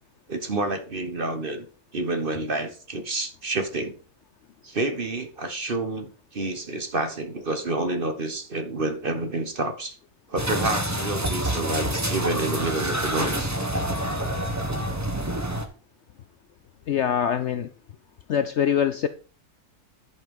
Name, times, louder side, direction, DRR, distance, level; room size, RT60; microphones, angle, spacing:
voice 1, 0.3-1.7 1.9-4.0 4.6-10.0 10.3-13.5, right 2 dB, 40° right, 1.3 m, -29 dB
sound 1, 10.4-15.6, right 1 dB, 10° right, 1.1 m, -27 dB
voice 2, 16.9-17.7 18.3-19.1, left 8 dB, 65° left, 0.7 m, -23 dB
10.5 x 5.8 x 5.3 m
omnidirectional pair, 1.6 m